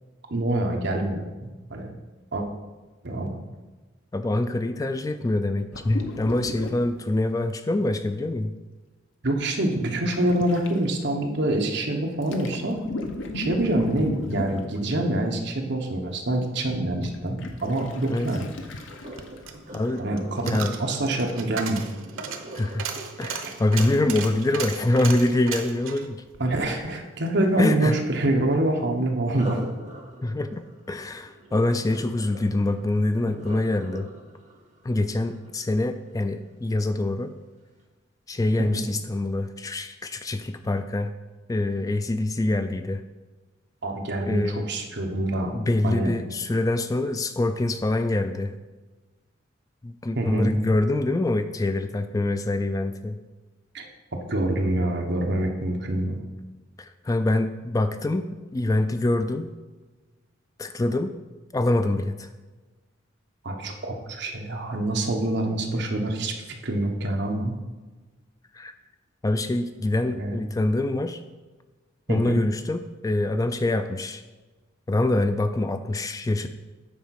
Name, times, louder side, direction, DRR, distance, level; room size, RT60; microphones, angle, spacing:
voice 1, 0.3-1.9 2.3-2.4 3.0-3.4 9.2-12.8 13.3-18.5 20.0-21.8 23.4-23.5 26.4-29.6 38.6-38.9 43.8-45.5 45.8-46.1 50.1-50.5 53.7-53.9 54.1-56.2 63.4-66.3 66.6-67.5 70.1-70.3 72.1-72.4, right 1 dB, 60° right, 3 dB, 1.1 m, -26 dB
voice 2, 4.1-8.5 18.1-18.3 19.7-20.0 20.4-20.7 22.5-22.8 23.2-26.2 27.6-27.9 30.2-34.1 34.8-37.3 38.3-41.1 41.5-43.0 44.2-44.7 45.5-48.5 49.8-53.2 56.8-59.5 60.6-61.1 61.5-62.3 68.5-68.7 69.2-71.2 72.1-74.2 74.9-76.5, left 2 dB, 15° left, 9 dB, 0.3 m, -25 dB
sound 1, 5.7-6.8 7.1-7.2 10.0-10.7 12.2-14.8 17.0-19.5 19.8-19.9, left 2 dB, 70° left, 0.9 m, -34 dB
Sink (filling or washing), 18.9-24.8 29.2-36.3 36.8-37.1 37.6-37.7, right 1 dB, 35° right, 1.5 m, -43 dB
Coin (dropping), 18.9-27.4 27.7-27.8, right 6 dB, 90° right, 0.8 m, -36 dB
8.5 x 4.6 x 5.8 m, 1.2 s
head